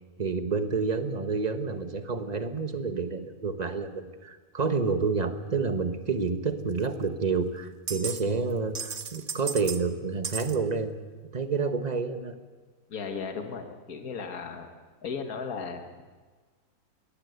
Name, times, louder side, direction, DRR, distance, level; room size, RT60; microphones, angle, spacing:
voice 1, 0.2-10.9 11.3-12.4, right 4 dB, 30° right, 8 dB, 1.3 m, -29 dB
sound 1, 6.8-6.9 7.9-8.2 8.5-9.8 10.2-10.6, right 6 dB, 45° right, 1.3 m, -35 dB
voice 2, 12.9-14.7 15.0-16.0, left 5 dB, 70° left, 5 dB, 2.1 m, -36 dB
22.0 x 18.0 x 8.1 m, 1.4 s
omnidirectional pair, 1.6 m